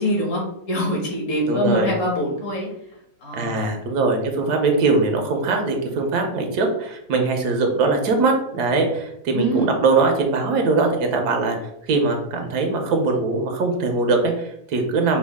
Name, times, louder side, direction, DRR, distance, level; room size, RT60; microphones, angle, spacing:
voice 1, 0.0-2.7 3.2-3.6 9.3-9.7, equal, 55° left, -1 dB, 1.5 m, -24 dB
voice 2, 1.5-1.9 3.3-11.6 11.9-15.2, right 3 dB, 80° right, 3 dB, 1.3 m, -21 dB
5.3 x 2.3 x 3.5 m, 0.78 s
omnidirectional pair, 1.7 m